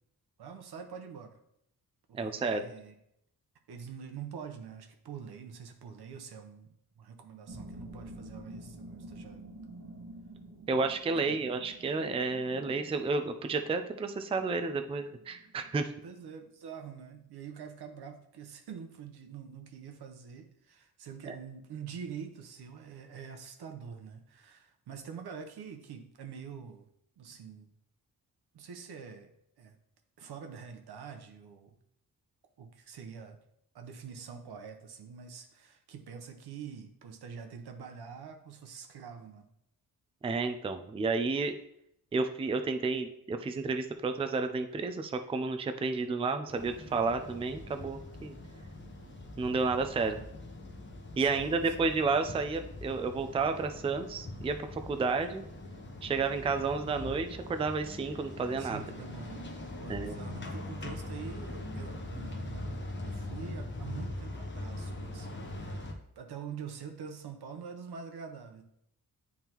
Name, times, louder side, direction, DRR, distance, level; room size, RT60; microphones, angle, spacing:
voice 1, 0.4-1.4 2.1-2.9 3.7-9.4 11.3-11.4 16.0-26.9 27.2-27.7 28.5-29.3 29.6-29.8 30.2-31.7 32.6-33.4 33.7-39.5 50.0-50.3 51.1-51.7 58.6-65.8 66.2-68.6, right 6 dB, 85° right, 5 dB, 0.9 m, -45 dB
voice 2, 2.1-2.6 10.7-15.9 21.3-21.4 40.2-41.5 42.1-48.3 49.4-50.1 51.2-55.4 56.0-58.8 59.9-60.2, right 4 dB, 15° right, 8 dB, 0.3 m, -31 dB
sound 1, 7.5-16.4, right 1 dB, 50° right, 1.1 m, -49 dB
sound 2, 46.5-65.9, left 1 dB, 30° left, 0.9 m, -42 dB
9.6 x 3.6 x 3.0 m, 0.76 s
wide cardioid pair, 135°, 38 cm